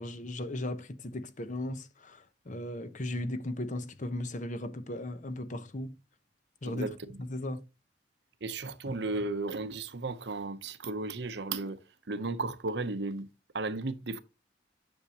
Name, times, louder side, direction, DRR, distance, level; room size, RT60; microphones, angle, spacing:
voice 1, 0.0-5.9 6.6-7.6, left 1 dB, 45° left, 0.9 m, -37 dB
voice 2, 8.4-11.8 12.1-13.3 13.5-14.2, right 3 dB, 65° right, 0.8 m, -34 dB
10.0 x 6.4 x 2.9 m
head